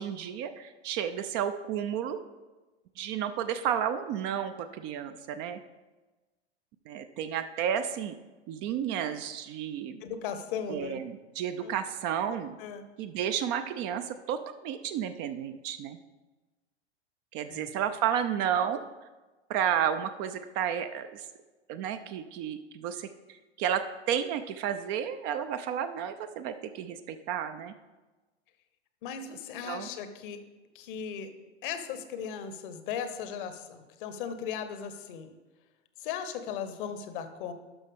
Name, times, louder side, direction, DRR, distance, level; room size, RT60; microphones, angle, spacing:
voice 1, 0.0-2.2 3.0-5.6 6.9-8.1 8.5-10.0 10.7-12.6 13.0-16.0 17.3-18.8 19.5-21.3 21.7-27.7 29.6-29.9, right 9 dB, 35° right, 10 dB, 0.4 m, -32 dB
voice 2, 10.0-11.0 11.6-11.7 12.3-12.9 17.5-17.7 29.0-30.4 30.7-31.3 31.6-35.3 36.0-37.5, left 7 dB, 50° left, 10 dB, 0.9 m, -37 dB
12.0 x 5.7 x 3.5 m, 1.2 s
figure-of-eight pair, 90°, 33 cm